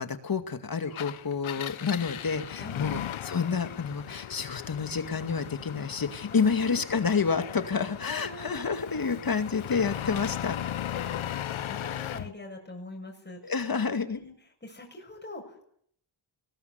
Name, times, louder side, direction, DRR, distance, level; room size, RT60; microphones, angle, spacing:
voice 1, 0.0-10.6 13.4-14.2, left 5 dB, 45° left, 8 dB, 2.3 m, -29 dB
Engine, 0.9-12.3, left 11 dB, 85° left, 0.9 m, -37 dB
voice 2, 2.6-3.1 6.3-6.9 8.0-9.2 11.0-11.2 11.5-13.6 14.1-14.3 14.6-15.6, left 1 dB, 20° left, 0 dB, 6.9 m, -44 dB
22.5 x 20.5 x 8.2 m, 0.66 s
cardioid pair, 90°, 47 cm